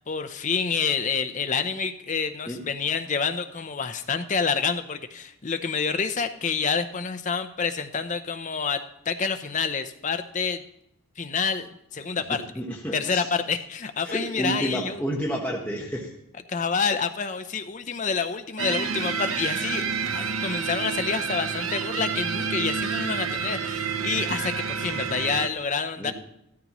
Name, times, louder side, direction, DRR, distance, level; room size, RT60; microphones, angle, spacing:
voice 1, 0.1-10.6 11.2-12.4 12.9-15.0 16.5-19.8 20.1-26.1, left 5 dB, 35° left, 9 dB, 0.6 m, -28 dB
voice 2, 12.6-13.2 14.0-16.1 26.0-26.1, equal, 10° left, -3 dB, 1.1 m, -30 dB
sound 1, 18.6-25.5, right 6 dB, 70° right, 0.8 m, -29 dB
14.5 x 13.0 x 3.0 m, 0.80 s
head